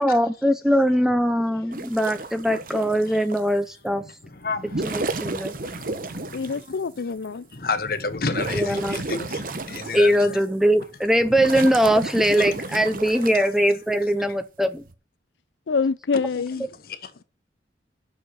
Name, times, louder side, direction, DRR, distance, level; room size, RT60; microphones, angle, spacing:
voice 1, 0.0-4.0 4.8-5.5 8.5-9.0 9.9-14.8, equal, ahead, 0.7 m, -21 dB
sound 1, 1.7-3.5 4.5-6.7 7.2-7.3 7.8-10.3 10.8-13.5 14.6-14.9, right 3 dB, 50° right, 0.9 m, -32 dB
voice 2, 4.0-7.0 7.5-10.4 11.5-11.6 12.4-12.6 13.2-13.4 14.0-14.3 16.8-17.2, left 4 dB, 55° left, 1.1 m, -32 dB
voice 3, 6.3-7.5 15.7-16.7, left 5 dB, 85° left, 0.5 m, -26 dB
7.9 x 6.5 x 8.2 m
head